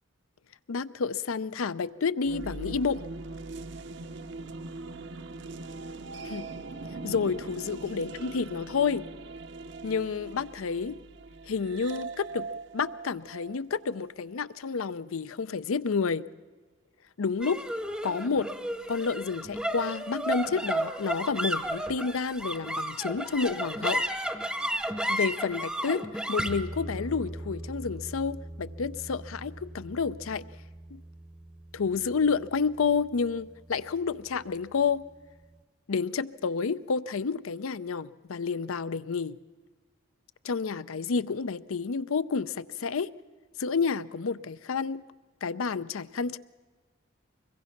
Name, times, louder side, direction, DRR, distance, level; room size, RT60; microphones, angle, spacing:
voice 1, 0.7-3.0 6.2-6.5 7.0-9.1 9.8-11.0 11.5-12.5 12.7-16.3 17.2-17.6 18.0-18.5 18.9-24.0 25.1-30.4 30.9-31.0 31.7-35.1 35.9-39.4 40.4-43.1 43.6-45.0 45.4-46.4, left 5 dB, 85° left, 0.6 m, -30 dB
sound 1, 2.2-14.1, right 3 dB, 55° right, 0.7 m, -41 dB
sound 2, 17.4-34.0, right 1 dB, 5° right, 0.7 m, -34 dB
25.0 x 22.0 x 5.8 m
head